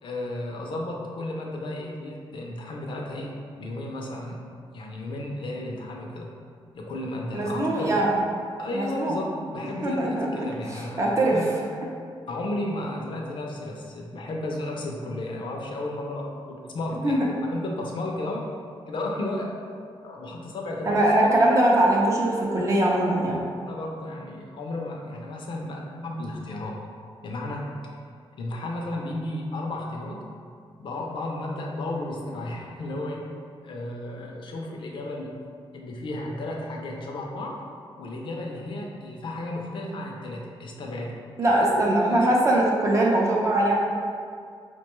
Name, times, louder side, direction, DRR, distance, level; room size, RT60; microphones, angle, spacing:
voice 1, 0.0-4.4 4.7-6.3 6.7-8.0 8.6-11.5 12.3-17.2 17.5-18.5 18.9-19.5 20.0-21.6 22.5-22.7 23.7-26.8 27.2-28.0 28.4-30.3 30.8-33.3 33.6-35.3 35.7-37.6 38.0-41.2 42.1-42.4, left 1 dB, 60° left, 0 dB, 0.5 m, -33 dB
voice 2, 7.3-8.2 8.7-9.1 9.8-10.3 10.7-11.4 17.0-17.2 20.9-23.4 41.4-43.8, right 1 dB, 30° right, -3 dB, 0.5 m, -21 dB
4.5 x 2.2 x 3.0 m, 2.2 s
wide cardioid pair, 175°, 10 cm